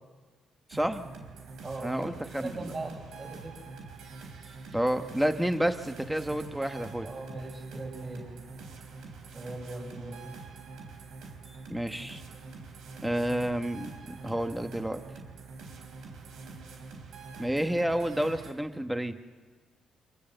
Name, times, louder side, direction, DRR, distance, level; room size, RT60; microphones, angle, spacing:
voice 1, 0.7-1.1 1.8-2.7 4.7-7.1 11.7-12.2 13.0-15.0 17.4-19.2, right 1 dB, 5° right, 7 dB, 1.7 m, -30 dB
sound 1, 0.7-18.5, right 4 dB, 80° right, 4.1 m, -45 dB
voice 2, 1.6-3.6 7.0-8.3 9.3-10.2, right 2 dB, 35° right, 0 dB, 7.9 m, -39 dB
26.0 x 20.0 x 8.0 m, 1.4 s
cardioid pair, 90°, 0 cm